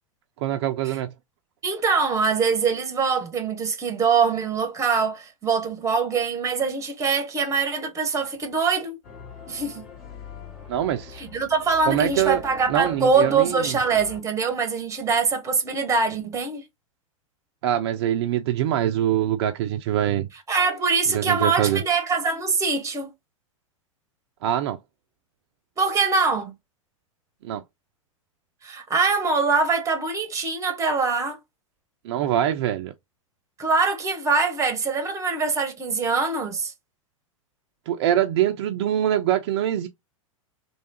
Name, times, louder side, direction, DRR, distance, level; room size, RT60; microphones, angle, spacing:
voice 1, 0.4-1.1 10.7-11.2 11.9-12.4 12.7-13.8 17.6-20.3 21.1-21.8 24.4-24.8 27.4-27.6 32.0-32.9 37.9-39.9, right 11 dB, 50° right, 0.5 m, -24 dB
voice 2, 1.6-9.0 9.5-9.8 11.2-16.6 20.5-23.1 25.8-26.5 28.6-31.4 33.6-36.7, right 4 dB, 20° right, 1.0 m, -23 dB
sound 1, 9.0-14.2, left 6 dB, 50° left, 2.4 m, -43 dB
3.5 x 3.1 x 2.7 m
figure-of-eight pair, 95°, 17 cm